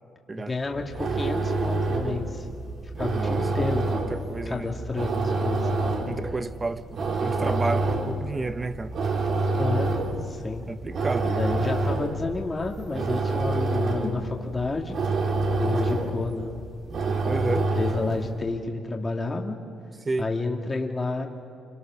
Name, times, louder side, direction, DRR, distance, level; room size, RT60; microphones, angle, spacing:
voice 1, 0.4-2.5 3.0-3.8 4.5-5.7 9.6-9.9 10.2-10.6 11.2-15.0 15.6-16.6 17.4-19.6 20.2-21.3, left 3 dB, 25° left, 1 dB, 2.2 m, -30 dB
sound 1, 0.7-18.3, right 2 dB, 60° right, 3.4 m, -27 dB
voice 2, 3.1-4.7 6.1-8.9 10.7-11.3 17.3-17.7 20.0-20.3, right 3 dB, 25° right, 12 dB, 1.0 m, -31 dB
27.5 x 26.5 x 6.4 m, 2.3 s
cardioid pair, 90°, 0 cm